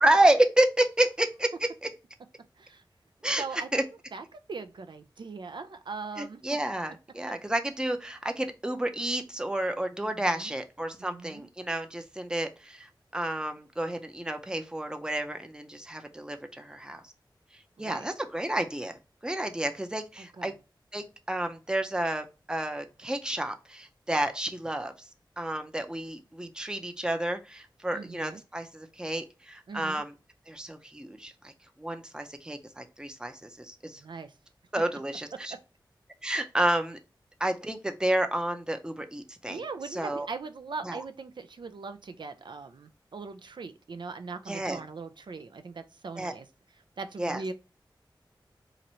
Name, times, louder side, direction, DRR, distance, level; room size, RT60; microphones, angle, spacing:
voice 1, 0.0-1.9 3.2-3.4 3.7-3.8 6.2-17.0 17.8-18.9 19.2-20.5 20.9-25.1 25.4-30.1 30.5-31.5 31.8-34.0 34.7-35.5 36.2-37.0 37.4-39.6 39.9-40.3 40.8-41.0 44.5-44.8 46.2-46.3 47.2-47.4, right 1 dB, 10° right, 0.6 m, -30 dB
voice 2, 3.4-6.4 10.0-10.6 11.0-11.5 17.8-18.1 20.2-20.5 27.9-28.4 29.7-30.0 34.0-34.3 39.5-46.5 47.0-47.5, right 4 dB, 65° right, 0.4 m, -40 dB
3.0 x 2.6 x 4.2 m
wide cardioid pair, 65°, 8 cm